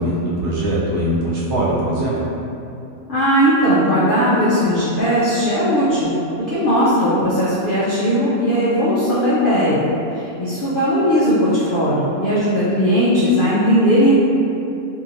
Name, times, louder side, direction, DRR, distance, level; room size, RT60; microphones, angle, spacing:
voice 1, 0.0-2.1, right 1 dB, 65° right, -7 dB, 0.8 m, -21 dB
voice 2, 3.1-6.1 6.4-9.9 10.1-14.1, equal, 70° left, -9 dB, 0.5 m, -17 dB
2.7 x 2.7 x 2.6 m, 2.8 s
omnidirectional pair, 1.5 m